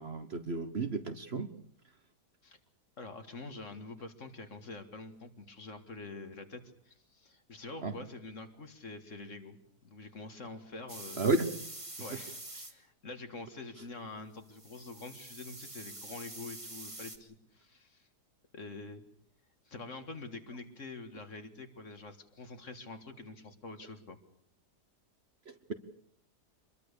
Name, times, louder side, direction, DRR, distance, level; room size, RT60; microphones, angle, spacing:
voice 1, 0.0-1.5 7.8-7.9 11.2-11.7 25.5-25.7, right 3 dB, 40° right, 10 dB, 1.3 m, -32 dB
voice 2, 3.0-11.2 12.0-12.4 12.6-18.1 18.5-19.0 19.7-24.2, left 3 dB, 50° left, 8 dB, 2.2 m, -46 dB
sound 1, 10.9-12.7 14.5-17.2, right 2 dB, 20° right, 2.3 m, -46 dB
25.0 x 21.5 x 6.8 m, 0.65 s
omnidirectional pair, 1.7 m